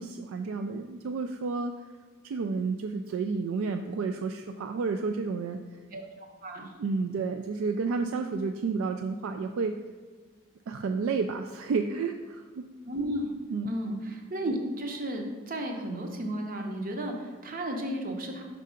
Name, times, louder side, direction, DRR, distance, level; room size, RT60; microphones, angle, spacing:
voice 1, 0.0-1.7 2.2-5.6 6.8-9.8 10.7-12.6 13.5-13.7, right 4 dB, 65° right, 6 dB, 0.3 m, -31 dB
voice 2, 6.4-6.7 12.8-13.3 13.6-18.4, right 1 dB, 40° right, 3 dB, 0.8 m, -33 dB
5.6 x 3.7 x 5.0 m, 1.4 s
head